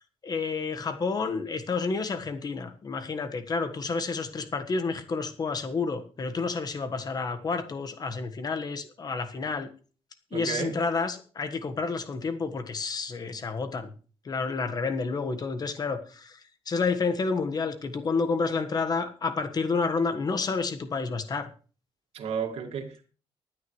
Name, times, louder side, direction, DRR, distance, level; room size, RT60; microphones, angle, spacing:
voice 1, 0.2-9.7 10.3-13.9 14.2-16.4 16.7-21.5, left 4 dB, 40° left, 1.4 m, -30 dB
voice 2, 10.3-10.8 22.1-23.1, right 6 dB, 85° right, 2.1 m, -33 dB
24.0 x 9.6 x 3.2 m
cardioid pair, 130°, 10 cm